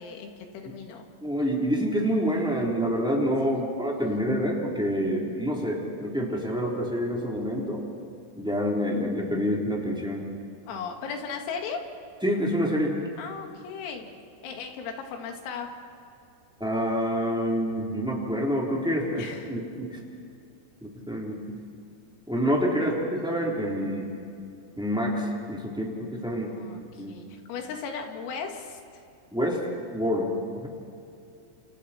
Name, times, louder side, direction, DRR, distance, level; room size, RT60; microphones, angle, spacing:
voice 1, 0.0-1.0 3.5-4.3 10.7-11.8 13.2-14.1 14.4-15.7 19.2-19.6 26.3-29.0, left 6 dB, 85° left, 3 dB, 4.7 m, -37 dB
voice 2, 1.2-7.8 8.3-10.2 12.2-12.9 16.6-20.0 20.8-21.4 22.3-24.1 24.8-26.5 27.0-27.1 29.3-29.6 29.9-30.7, equal, ahead, -3 dB, 2.0 m, -27 dB
29.5 x 28.5 x 4.4 m, 2.6 s
omnidirectional pair, 5.9 m